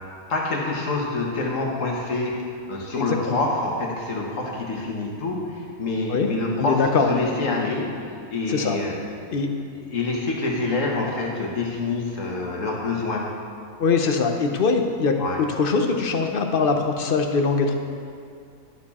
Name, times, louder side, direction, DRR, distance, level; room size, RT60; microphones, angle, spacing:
voice 1, 0.3-9.0 9.7-13.3 15.2-15.4, left 3 dB, 70° left, -1 dB, 1.7 m, -27 dB
voice 2, 3.0-3.4 6.1-6.3 6.6-7.1 8.5-8.8 9.3-9.5 13.8-17.7, left 4 dB, 50° left, 4 dB, 0.8 m, -22 dB
11.5 x 6.9 x 4.2 m, 2.3 s
omnidirectional pair, 1.4 m